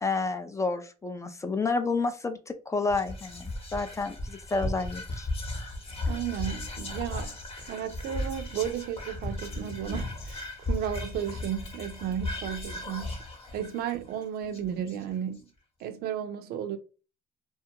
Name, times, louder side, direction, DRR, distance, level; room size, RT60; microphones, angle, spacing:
voice 1, 0.0-5.3, left 3 dB, 20° left, 0.3 m, -30 dB
Whispering, 2.9-15.3, left 1 dB, 35° left, 0.9 m, -36 dB
voice 2, 6.1-7.3 7.6-13.2 13.5-15.4 15.8-16.8, right 9 dB, 70° right, 0.5 m, -34 dB
2.2 x 2.2 x 2.8 m
cardioid pair, 110°, 17 cm